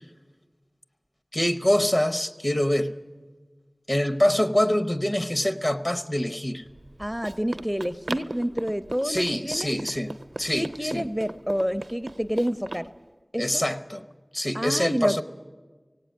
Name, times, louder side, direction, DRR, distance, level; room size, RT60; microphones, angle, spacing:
voice 1, 1.3-3.0 3.9-6.6 9.0-11.1 13.4-14.0 14.3-15.2, left 1 dB, 40° left, 10 dB, 0.9 m, -25 dB
Run, 6.7-12.9, right 2 dB, 80° right, 0.5 m, -39 dB
voice 2, 7.0-9.8 10.5-12.9 13.3-13.6 14.5-15.2, equal, ahead, 11 dB, 0.5 m, -28 dB
17.5 x 17.0 x 9.1 m, 1.4 s
wide cardioid pair, 50°, 0 cm